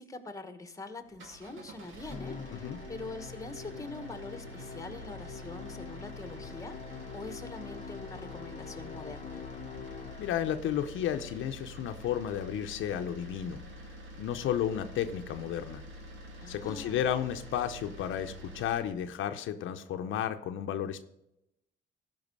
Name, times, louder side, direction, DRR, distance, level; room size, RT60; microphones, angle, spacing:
voice 1, 0.0-9.4 16.4-17.1, left 3 dB, 15° left, 9 dB, 1.3 m, -44 dB
sound 1, 1.0-18.9, equal, 80° right, 2.2 m, -47 dB
Musical instrument, 2.1-10.7, left 6 dB, 35° left, 0.8 m, -45 dB
voice 2, 10.2-13.6 14.2-15.8 16.5-21.1, left 10 dB, 80° left, 7 dB, 0.7 m, -33 dB
14.0 x 5.5 x 5.4 m, 0.84 s
cardioid pair, 90°, 20 cm